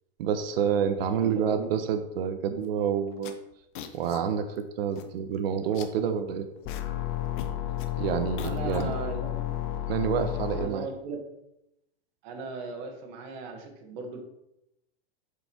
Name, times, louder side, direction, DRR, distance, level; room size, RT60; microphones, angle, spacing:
voice 1, 0.2-3.3 3.9-6.5 8.0-9.0 9.9-10.9, right 7 dB, 60° right, 8 dB, 1.2 m, -28 dB
voice 2, 1.1-1.7 8.4-9.4 10.5-11.2 12.2-14.2, right 4 dB, 45° right, 4 dB, 1.7 m, -38 dB
sound 1, 2.6-2.8 3.1-4.2 4.6-4.7 4.9-5.4 5.6-6.9 7.2-9.4, left 8 dB, 50° left, 0.9 m, -44 dB
sound 2, 6.6-10.7, left 13 dB, 25° left, 0.4 m, -32 dB
8.3 x 5.2 x 4.5 m, 0.85 s
supercardioid pair, 155°, 32 cm